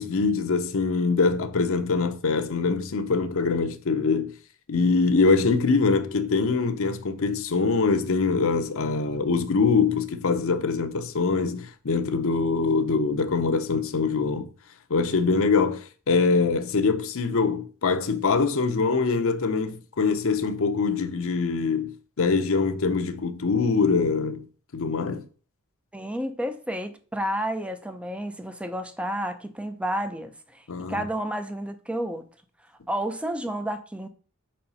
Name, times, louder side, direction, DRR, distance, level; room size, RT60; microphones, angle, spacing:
voice 1, 0.0-4.3 4.7-14.5 14.9-24.4 24.7-25.2 30.7-31.0, left 4 dB, 65° left, 0.7 m, -23 dB
voice 2, 25.9-30.6 30.9-32.2 32.9-34.1, right 1 dB, 5° right, 0.5 m, -31 dB
4.8 x 4.3 x 5.3 m
head